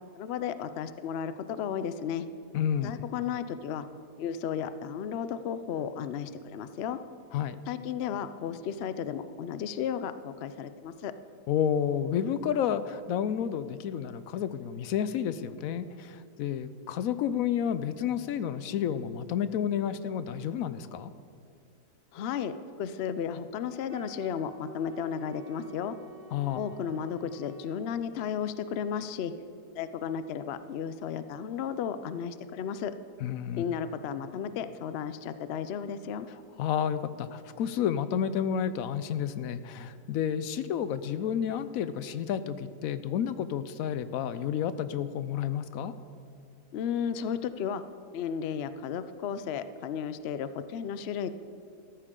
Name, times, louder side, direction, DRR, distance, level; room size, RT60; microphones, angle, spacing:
voice 1, 0.1-2.3 2.8-3.9 4.2-7.0 7.7-11.1 22.1-25.9 26.6-29.3 29.7-32.9 33.6-36.3 46.7-47.8 48.1-51.3, left 8 dB, 85° left, 12 dB, 0.5 m, -34 dB
voice 2, 2.5-2.9 7.3-7.6 11.5-21.1 26.3-26.6 33.2-33.6 36.6-45.9, left 9 dB, 70° left, 13 dB, 0.9 m, -30 dB
Wind instrument woodwind instrument, 23.9-27.8, right 3 dB, 15° right, 1.4 m, -50 dB
14.5 x 13.0 x 3.7 m, 2.5 s
omnidirectional pair, 1.8 m